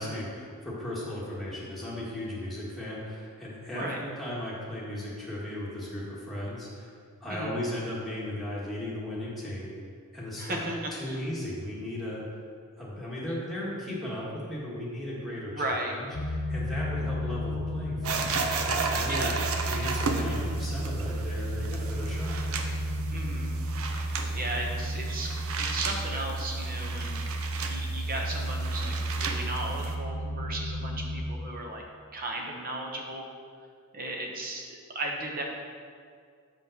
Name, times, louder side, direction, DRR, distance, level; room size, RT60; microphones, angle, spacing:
voice 1, 0.0-6.9 7.2-9.7 10.1-10.6 10.9-12.2 12.8-19.3 19.7-22.4, left 1 dB, ahead, -7 dB, 1.7 m, -36 dB
voice 2, 10.4-11.2 15.5-15.9 19.1-19.3 23.1-23.5 24.3-27.2 27.7-31.8 32.1-33.3 33.9-35.4, right 1 dB, 40° right, 0 dB, 1.1 m, -35 dB
sound 1, 16.1-31.2, right 1 dB, 70° left, 0.8 m, -32 dB
sound 2, 18.0-30.0, right 4 dB, 70° right, 0.7 m, -35 dB
5.5 x 5.4 x 6.6 m, 2.1 s
head